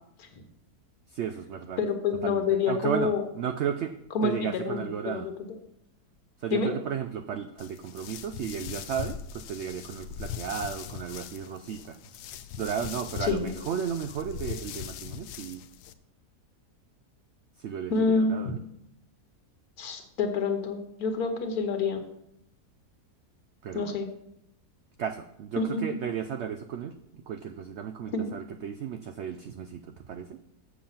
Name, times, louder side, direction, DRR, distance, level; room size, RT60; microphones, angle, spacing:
voice 1, 1.1-1.8 2.2-3.9 4.2-5.3 6.4-12.0 12.6-15.6 17.6-18.6 23.6-24.0 25.0-30.4, right 8 dB, 75° right, 9 dB, 0.6 m, -34 dB
voice 2, 1.8-3.2 4.1-5.3 6.5-6.7 13.2-13.5 17.9-18.3 19.8-22.0 23.7-24.1 25.6-25.9 28.1-28.3, left 4 dB, 70° left, 6 dB, 1.6 m, -27 dB
sound 1, 7.6-15.9, left 9 dB, 90° left, 1.2 m, -40 dB
7.3 x 7.1 x 5.7 m, 0.80 s
omnidirectional pair, 1.7 m